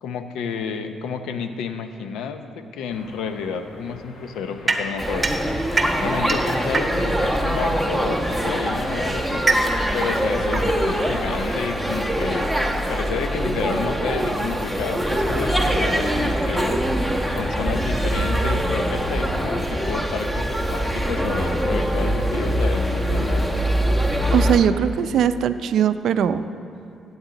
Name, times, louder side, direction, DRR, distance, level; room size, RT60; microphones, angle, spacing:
voice 1, 0.0-5.3 6.0-9.5 9.9-12.5 12.9-16.8 17.3-23.6, left 6 dB, 85° left, 8 dB, 0.7 m, -30 dB
sound 1, 2.9-11.7, left 3 dB, 70° left, 1.1 m, -40 dB
sound 2, 4.7-7.3 8.3-11.7, right 2 dB, 25° right, 1.0 m, -26 dB
sound 3, 5.0-24.6, equal, 10° left, 1.1 m, -23 dB
voice 2, 24.3-26.4, right 8 dB, 70° right, 12 dB, 0.4 m, -20 dB
15.5 x 8.0 x 4.0 m, 2.5 s
cardioid pair, 90°, 0 cm